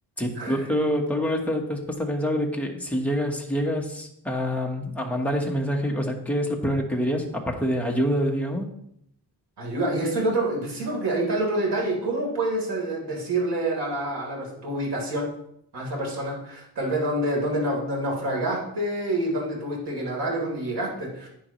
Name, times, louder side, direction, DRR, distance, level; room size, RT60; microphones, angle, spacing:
voice 1, 0.2-8.7, equal, 5° left, 0 dB, 1.2 m, -26 dB
voice 2, 9.6-15.3 15.7-21.3, right 1 dB, 80° right, -2 dB, 3.8 m, -27 dB
11.0 x 9.5 x 3.1 m, 0.74 s
wide cardioid pair, 165°, 40 cm